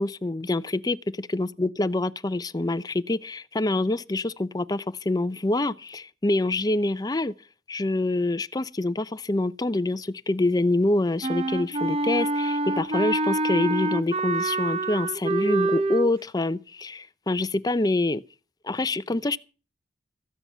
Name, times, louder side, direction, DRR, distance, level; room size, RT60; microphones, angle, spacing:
voice 1, 0.0-7.3 7.7-18.2 18.6-19.4, left 2 dB, 20° left, 0.6 m, -26 dB
Wind instrument woodwind instrument, 11.2-16.1, right 2 dB, 35° right, 0.8 m, -26 dB
14.0 x 9.6 x 5.6 m
head